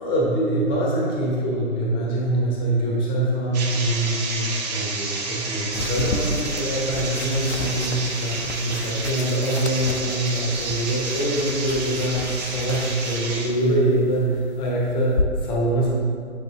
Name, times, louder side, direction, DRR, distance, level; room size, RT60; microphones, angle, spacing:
voice 1, 0.0-15.9, right 1 dB, 10° left, -3 dB, 1.0 m, -24 dB
sound 1, 3.5-13.5, right 3 dB, 30° right, 1.1 m, -30 dB
sound 2, 5.7-15.2, left 3 dB, 55° left, 0.7 m, -33 dB
8.1 x 6.7 x 3.5 m, 2.2 s
figure-of-eight pair, 130°, 40 cm